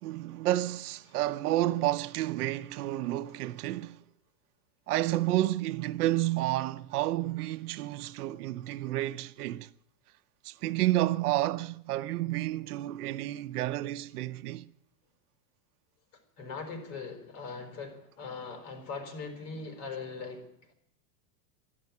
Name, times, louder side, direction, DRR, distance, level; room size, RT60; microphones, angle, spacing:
voice 1, 0.0-4.0 4.9-9.7 10.4-14.7, right 15 dB, 80° right, 0.8 m, -30 dB
voice 2, 16.4-20.7, left 4 dB, 50° left, 4.7 m, -40 dB
12.0 x 11.5 x 9.6 m
supercardioid pair, 160°, 45 cm